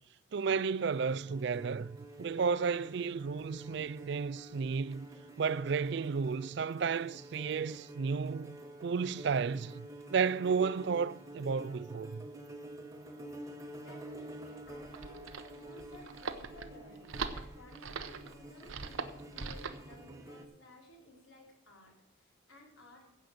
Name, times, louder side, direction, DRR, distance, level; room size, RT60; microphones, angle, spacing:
voice 1, 0.3-5.1 5.4-12.3, right 5 dB, 55° right, 0.4 m, -33 dB
sound 1, 0.9-20.4, right 1 dB, 15° right, 1.1 m, -49 dB
voice 2, 13.7-23.0, left 1 dB, 80° left, 4.8 m, -56 dB
sound 2, 14.7-19.8, right 5 dB, 85° right, 1.0 m, -41 dB
15.0 x 5.4 x 7.8 m
head